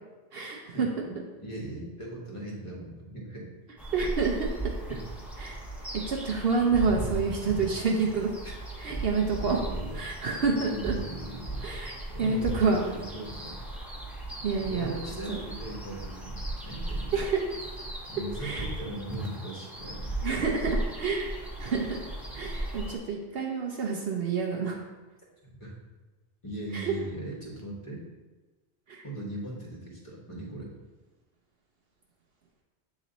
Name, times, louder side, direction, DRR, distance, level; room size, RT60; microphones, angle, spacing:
voice 1, 0.3-1.1 3.9-4.7 5.4-8.3 8.8-9.6 9.9-10.9 11.6-11.9 12.2-12.8 14.4-14.9 15.3-15.4 17.1-17.4 18.4-18.7 20.2-21.3 21.6-22.0 22.3-24.8 26.7-26.9 28.9-29.0, right 4 dB, 65° right, 0 dB, 0.8 m, -28 dB
voice 2, 1.0-3.5 4.9-5.0 8.0-8.1 8.4-8.5 8.9-9.0 9.4-10.0 10.5-11.6 12.1-13.6 14.6-17.1 18.1-20.1 25.5-25.7 26.4-28.0 29.0-30.7, right 1 dB, 30° left, -3 dB, 1.3 m, -39 dB
sound 1, 3.8-23.0, right 1 dB, ahead, 0.9 m, -37 dB
7.8 x 3.1 x 3.9 m, 1.2 s
omnidirectional pair, 1.1 m